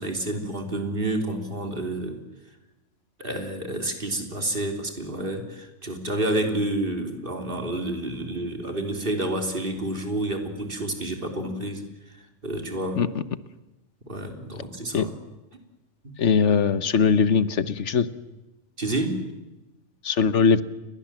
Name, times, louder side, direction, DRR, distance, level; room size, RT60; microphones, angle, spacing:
voice 1, 0.0-2.2 3.2-11.8 12.4-13.0 14.1-15.1 18.8-19.2, right 1 dB, 40° right, 5 dB, 3.7 m, -29 dB
voice 2, 16.2-18.1 20.0-20.6, left 6 dB, 60° left, 15 dB, 1.4 m, -20 dB
29.5 x 22.0 x 7.6 m, 1.0 s
omnidirectional pair, 1.4 m